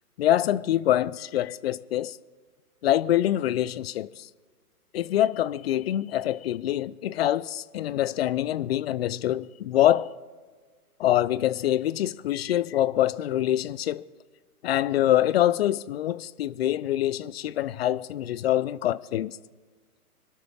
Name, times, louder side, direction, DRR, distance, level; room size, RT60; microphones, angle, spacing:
voice 1, 0.2-2.2 2.8-4.3 4.9-10.1 11.0-14.0 14.6-19.4, left 12 dB, 45° left, 0.5 m, -25 dB
26.0 x 12.5 x 3.5 m
hypercardioid pair, 135°, 46 cm